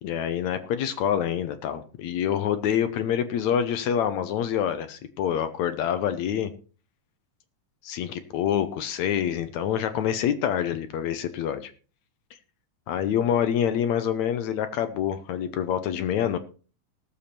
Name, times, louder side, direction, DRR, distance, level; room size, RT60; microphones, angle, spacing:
voice 1, 0.0-6.5 7.8-11.7 12.9-16.4, left 9 dB, 70° left, 10 dB, 2.0 m, -26 dB
18.0 x 7.1 x 4.3 m, 0.37 s
omnidirectional pair, 3.8 m